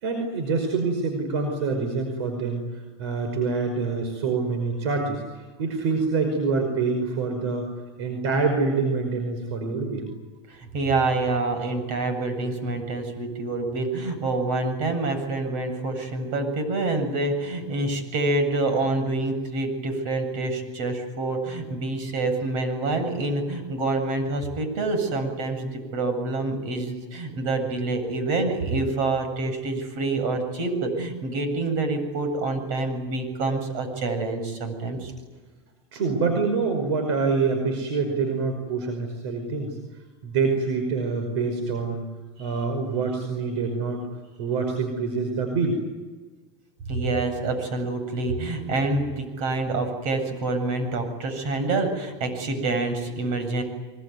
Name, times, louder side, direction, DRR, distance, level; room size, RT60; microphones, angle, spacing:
voice 1, 0.0-7.7 8.0-10.1 35.9-39.8 40.2-42.0 42.4-44.0 44.4-45.8, right 4 dB, 75° right, 4 dB, 5.4 m, -26 dB
voice 2, 10.5-35.1 46.9-53.6, right 2 dB, 60° right, 8 dB, 7.9 m, -27 dB
24.5 x 23.0 x 9.6 m, 1.3 s
supercardioid pair, 115°, 14 cm